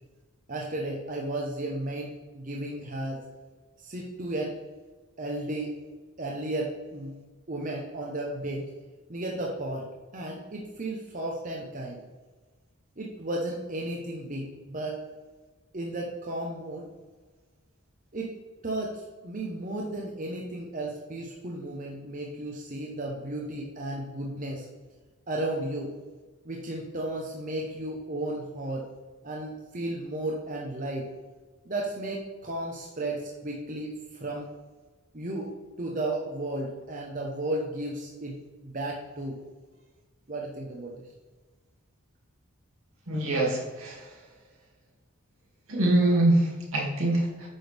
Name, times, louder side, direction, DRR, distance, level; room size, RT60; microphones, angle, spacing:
voice 1, 0.5-3.2 3.8-4.6 5.2-5.9 6.2-7.2 7.5-8.7 9.1-12.0 13.0-15.0 15.7-16.9 18.1-18.3 18.6-24.7 25.3-25.9 26.4-28.9 29.2-31.1 31.6-34.5 35.1-38.4 38.6-39.4 40.3-41.0, right 1 dB, 35° right, -1 dB, 1.0 m, -34 dB
voice 2, 43.1-44.1 45.7-47.5, right 1 dB, 75° right, -3 dB, 2.6 m, -24 dB
9.2 x 6.2 x 3.5 m, 1.3 s
head